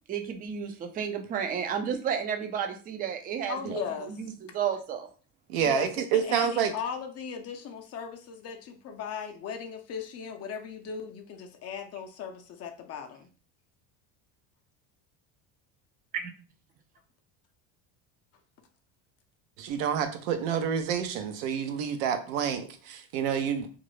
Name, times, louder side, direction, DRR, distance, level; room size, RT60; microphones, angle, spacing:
voice 1, 0.1-5.1 16.1-16.3, right 7 dB, 25° right, 0.3 m, -32 dB
voice 2, 3.5-4.1 5.6-13.3, left 7 dB, 40° left, 0.5 m, -38 dB
voice 3, 5.5-6.7 19.6-23.7, right 8 dB, 80° right, 0.6 m, -28 dB
2.4 x 2.0 x 3.0 m
supercardioid pair, 115°, 40 cm